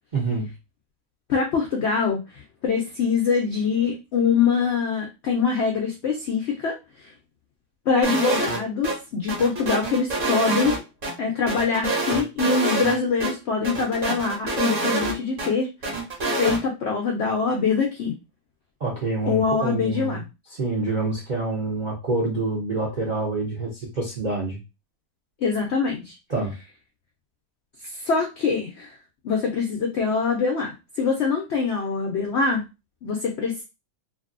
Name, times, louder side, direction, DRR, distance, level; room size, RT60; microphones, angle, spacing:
voice 1, 0.1-0.5 18.8-20.2 20.6-24.6 26.3-26.5, right 3 dB, 70° right, -4 dB, 0.4 m, -27 dB
voice 2, 1.3-7.1 7.9-10.7 11.2-15.7 16.4-18.1 19.2-20.2 25.4-26.2 27.8-29.0 29.2-32.6 33.0-33.6, left 5 dB, 80° left, 1 dB, 0.6 m, -24 dB
sound 1, 8.0-8.6 8.8-9.0 9.3-11.1 11.5-13.0 13.2-13.3 13.6-15.5 15.8-16.6, right 2 dB, 45° right, 0.7 m, -26 dB
2.7 x 2.6 x 2.4 m, 0.26 s
omnidirectional pair, 1.8 m